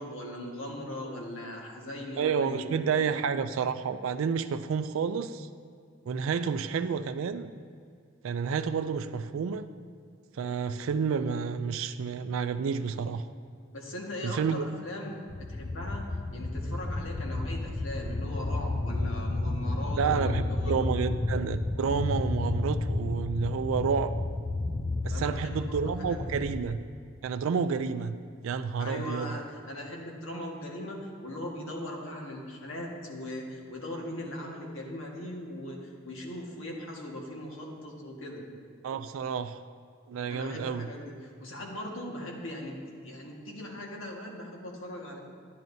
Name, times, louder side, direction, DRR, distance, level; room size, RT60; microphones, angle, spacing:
voice 1, 0.0-3.1 13.7-15.2 15.5-20.8 25.1-26.2 28.8-38.4 40.3-45.2, left 1 dB, 75° left, -1 dB, 1.6 m, -39 dB
voice 2, 2.2-5.5 6.1-7.5 8.2-9.7 10.3-13.2 14.2-14.7 20.0-24.2 25.0-26.8 27.2-28.2 28.4-29.3 38.8-39.6 40.1-40.9, right 6 dB, 80° right, 10 dB, 0.3 m, -30 dB
sound 1, 15.3-26.7, left 2 dB, 20° left, 0.3 m, -32 dB
10.5 x 10.5 x 2.7 m, 2.3 s
head